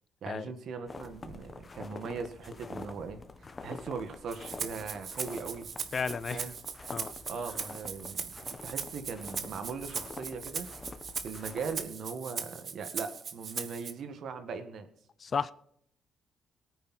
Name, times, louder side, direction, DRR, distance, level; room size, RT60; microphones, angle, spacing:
voice 1, 0.2-3.2 3.6-5.7 6.3-6.5 7.3-8.3 8.6-10.7 11.2-14.9, right 5 dB, 65° right, 8 dB, 1.9 m, -39 dB
sound 1, 0.9-11.8, left 3 dB, 30° left, 1.4 m, -46 dB
Rattle (instrument), 4.3-13.9, right 6 dB, 50° right, 1.3 m, -39 dB
voice 2, 5.9-6.4 6.9-7.1 15.2-15.5, left 5 dB, 45° left, 17 dB, 0.6 m, -32 dB
18.5 x 9.4 x 4.4 m, 0.68 s
cardioid pair, 90°, 0 cm